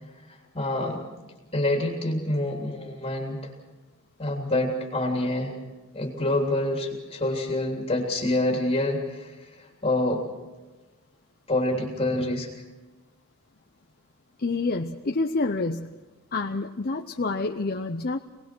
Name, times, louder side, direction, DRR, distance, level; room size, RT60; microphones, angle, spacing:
voice 1, 0.3-1.0 1.5-3.5 4.2-5.5 5.9-10.2 11.5-12.6, left 1 dB, 25° left, 0 dB, 3.3 m, -27 dB
voice 2, 14.4-15.9 16.3-18.2, left 3 dB, 45° left, 4 dB, 0.7 m, -28 dB
27.5 x 19.5 x 6.2 m, 1.2 s
head